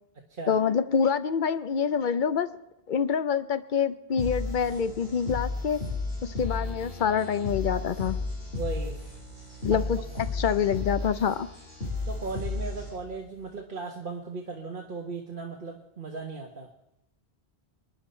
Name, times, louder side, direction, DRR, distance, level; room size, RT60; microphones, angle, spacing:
voice 1, 0.5-2.5 2.9-5.8 6.2-8.2 9.6-10.0 10.3-11.5, left 7 dB, 55° left, 13 dB, 0.7 m, -26 dB
sound 1, 4.2-13.2, left 3 dB, 70° left, 5.6 m, -34 dB
voice 2, 8.5-9.0 9.7-9.8 12.0-16.7, right 4 dB, 55° right, 0 dB, 1.4 m, -37 dB
26.5 x 10.0 x 4.4 m, 0.85 s
omnidirectional pair, 1.1 m